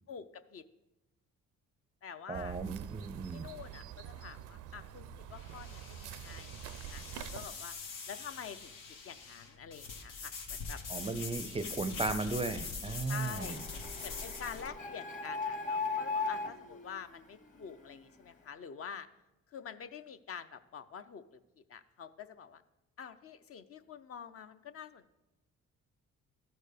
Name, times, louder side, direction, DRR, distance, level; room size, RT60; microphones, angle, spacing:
voice 1, 0.1-0.6 2.0-2.6 3.3-6.6 6.9-7.8 8.1-8.7 9.0-10.8 13.1-13.6 14.0-19.1 19.5-22.6 23.0-25.1, left 7 dB, 50° left, 11 dB, 0.5 m, -47 dB
voice 2, 2.3-3.5 10.9-13.6, right 3 dB, 20° right, 11 dB, 0.4 m, -36 dB
sound 1, 2.3-7.5, right 11 dB, 85° right, 0.5 m, -46 dB
sound 2, 4.3-14.7, left 4 dB, 85° left, 1.2 m, -44 dB
Printer, 13.4-18.0, left 4 dB, 25° left, 1.0 m, -38 dB
13.0 x 4.4 x 5.0 m, 0.97 s
cardioid pair, 90°, 30 cm